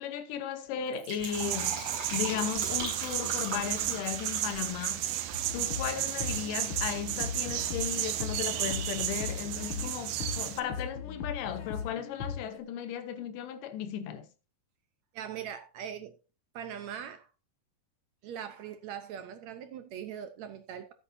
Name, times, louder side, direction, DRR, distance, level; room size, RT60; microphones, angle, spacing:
voice 1, 0.0-5.1 5.5-14.3, left 9 dB, 80° left, 2.5 m, -36 dB
Fill (with liquid), 0.8-5.6 5.9-6.0, right 2 dB, 55° right, 5.6 m, -40 dB
sound 1, 1.3-10.6, right 13 dB, 90° right, 2.5 m, -33 dB
sound 2, 5.3-12.6, left 6 dB, 55° left, 1.5 m, -39 dB
voice 2, 15.1-16.2 16.5-17.3 18.2-20.9, right 9 dB, 70° right, 1.8 m, -41 dB
15.0 x 8.5 x 2.6 m
omnidirectional pair, 3.8 m